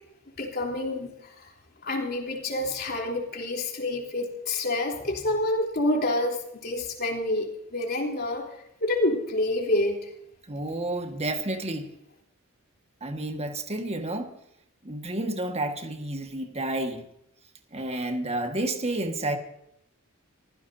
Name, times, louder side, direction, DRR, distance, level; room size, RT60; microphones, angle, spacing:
voice 1, 0.4-1.5 1.8-8.5 8.8-10.0, left 1 dB, 50° left, 3.5 m, -28 dB
voice 2, 10.5-11.9 13.0-14.4 14.8-17.1 17.7-19.4, right 1 dB, 30° right, 1.7 m, -30 dB
25.0 x 15.5 x 2.8 m
head